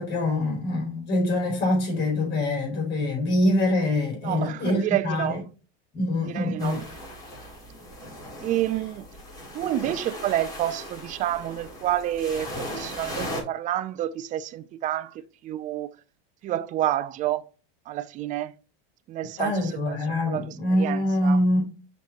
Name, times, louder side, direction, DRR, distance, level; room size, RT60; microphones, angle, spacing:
voice 1, 0.0-5.4 5.9-6.8 19.4-21.6, left 1 dB, 35° left, 4.2 m, -24 dB
voice 2, 4.2-5.4 6.2-6.8 8.4-9.1 9.5-15.9 16.4-17.4 17.9-18.5 19.1-20.5 20.8-21.4, right 13 dB, 25° right, 0.4 m, -29 dB
waves-atlantic-ocean, 6.6-13.4, left 1 dB, 10° left, 3.7 m, -38 dB
7.0 x 5.7 x 3.0 m
supercardioid pair, 120°, 30 cm